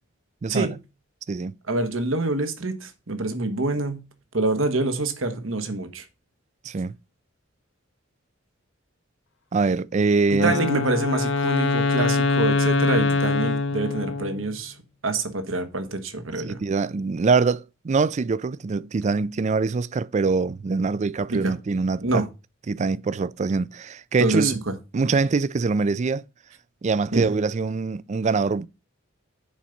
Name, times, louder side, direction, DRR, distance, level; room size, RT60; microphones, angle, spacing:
voice 1, 1.7-4.0 4.3-6.0 10.3-14.8 15.0-16.6 21.3-21.5 22.0-22.3 24.2-24.7 27.1-27.4, right 2 dB, 90° right, 1.4 m, -26 dB
voice 2, 6.6-6.9 9.5-10.6 16.4-22.2 22.7-24.6 24.9-26.2 26.8-28.7, right 4 dB, 35° right, 0.4 m, -24 dB
Wind instrument woodwind instrument, 10.3-14.5, left 3 dB, 65° left, 0.8 m, -23 dB
7.2 x 5.2 x 5.8 m
head